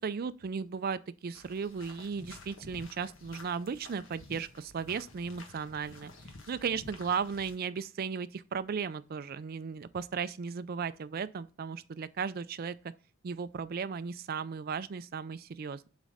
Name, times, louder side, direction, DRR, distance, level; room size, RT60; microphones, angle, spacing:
voice 1, 0.0-6.1 6.5-12.8 13.2-15.9, right 6 dB, 50° right, 0.4 m, -36 dB
sound 1, 1.3-7.6, left 2 dB, 75° left, 1.3 m, -51 dB
7.4 x 4.1 x 4.9 m
head